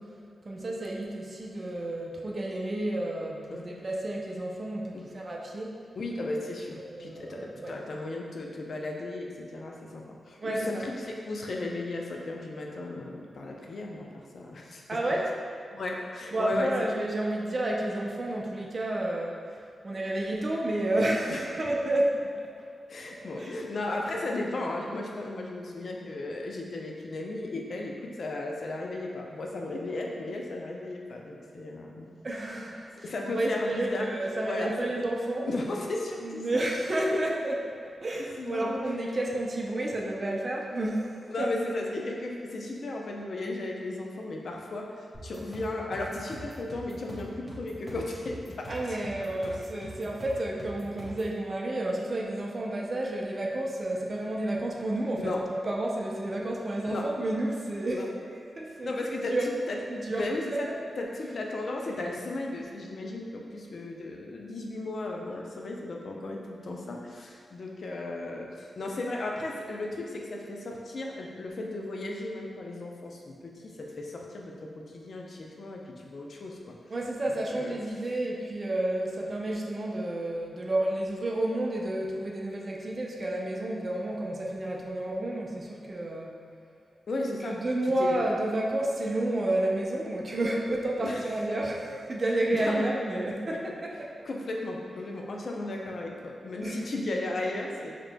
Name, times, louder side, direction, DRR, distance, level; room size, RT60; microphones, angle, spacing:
voice 1, 0.4-5.7 6.8-7.8 10.4-10.8 14.9-15.3 16.3-19.4 19.8-22.5 23.2-23.5 32.2-35.5 36.2-37.6 38.0-41.5 48.7-58.1 58.4-59.5 59.9-60.2 60.5-60.7 76.9-86.4 87.4-94.1 96.6-96.9, right 1 dB, 45° right, -1 dB, 0.5 m, -30 dB
voice 2, 6.0-14.8 15.7-16.9 21.3-21.4 22.9-32.1 33.0-34.1 34.4-34.9 35.5-36.4 37.1-37.2 38.4-38.8 41.3-49.5 55.2-55.4 56.8-57.1 57.9-58.1 58.8-59.8 60.1-60.7 61.0-76.8 77.5-77.7 87.1-87.6 88.0-88.3 91.0-91.3 92.5-92.8 93.5-93.6 94.2-97.9, left 2 dB, 65° left, 0 dB, 0.5 m, -35 dB
sound 1, 45.1-51.3, equal, 5° left, 1.2 m, -43 dB
5.0 x 2.9 x 2.2 m, 2.3 s
cardioid pair, 65°, 0 cm